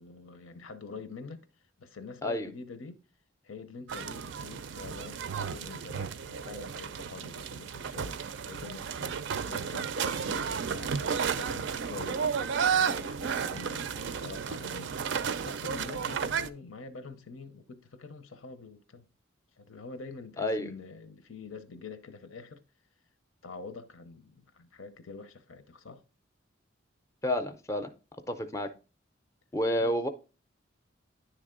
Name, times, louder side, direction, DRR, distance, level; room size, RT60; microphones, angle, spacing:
voice 1, 0.0-1.4 1.8-3.0 3.4-14.9 15.4-19.0 19.6-22.6 23.4-26.0 29.8-30.0, left 4 dB, 90° left, 0.7 m, -46 dB
sound 1, 3.9-16.5, right 6 dB, 60° right, 0.4 m, -33 dB
voice 2, 20.4-20.7 27.2-27.9 28.3-28.7 29.5-30.1, left 1 dB, 15° left, 0.5 m, -29 dB
10.0 x 3.3 x 3.7 m
head